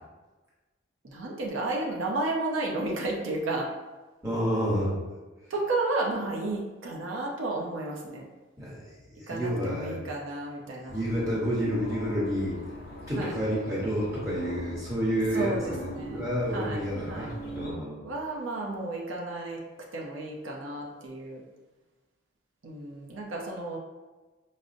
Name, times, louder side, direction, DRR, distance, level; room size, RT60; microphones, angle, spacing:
voice 1, 1.0-3.7 5.5-8.2 9.3-10.9 13.2-13.3 15.3-15.7 16.0-16.2 16.5-16.8 17.1-17.3 18.0-19.6 19.9-21.4 22.6-23.8, right 2 dB, 85° right, -1 dB, 0.6 m, -32 dB
voice 2, 4.2-5.0 8.6-10.0 10.9-12.6 13.1-18.0, equal, 15° right, -7 dB, 1.0 m, -29 dB
sound 1, 10.9-17.7, equal, 50° left, 0.6 m, -42 dB
4.9 x 2.0 x 2.5 m, 1.2 s
head